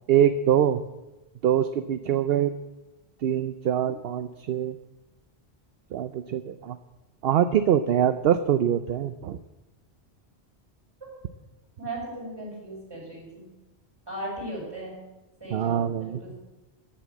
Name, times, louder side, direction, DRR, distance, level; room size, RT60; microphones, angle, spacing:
voice 1, 0.1-0.8 1.4-2.5 3.2-4.8 5.9-6.8 7.2-9.4 15.5-16.2, right 10 dB, 70° right, 11 dB, 0.8 m, -24 dB
voice 2, 11.8-13.5 14.1-15.0 15.4-16.3, right 1 dB, 20° right, -4 dB, 6.6 m, -37 dB
13.5 x 7.4 x 8.4 m, 1.0 s
omnidirectional pair, 1.1 m